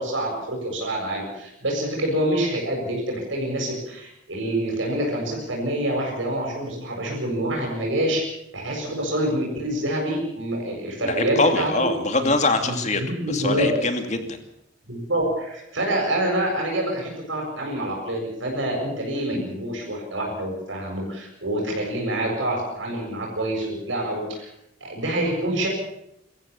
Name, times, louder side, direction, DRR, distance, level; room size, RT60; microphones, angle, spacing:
voice 1, 0.0-8.2 8.5-11.9 12.2-12.3 12.6-13.7 14.9-24.5 24.8-25.7, right 1 dB, 70° right, -1 dB, 7.5 m, -26 dB
voice 2, 11.0-13.0 13.3-14.4, left 2 dB, 35° left, 6 dB, 2.6 m, -23 dB
25.5 x 14.5 x 7.2 m, 0.81 s
head